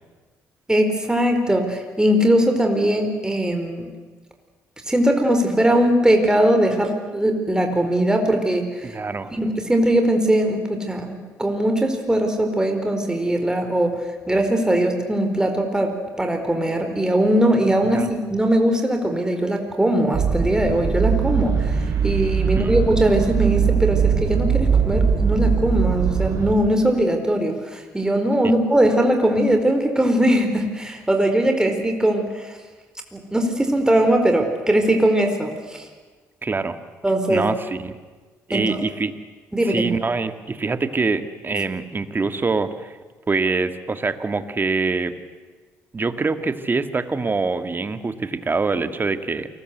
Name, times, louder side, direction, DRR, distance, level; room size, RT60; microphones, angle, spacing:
voice 1, 0.7-3.9 4.9-8.9 9.3-13.9 14.3-18.0 18.3-32.6 33.1-35.8 37.0-37.4 38.5-38.8 39.5-39.9, right 1 dB, 10° right, 4 dB, 4.5 m, -20 dB
voice 2, 8.8-9.3 17.9-18.1 22.4-22.8 36.4-36.8 37.3-38.0 38.5-39.1 39.6-43.0 43.3-45.1 45.9-49.5, right 4 dB, 30° right, 10 dB, 2.1 m, -24 dB
sound 1, 20.1-26.5, right 6 dB, 60° right, 5.0 m, -21 dB
28.0 x 20.5 x 8.2 m, 1.3 s
supercardioid pair, 60°, 6 cm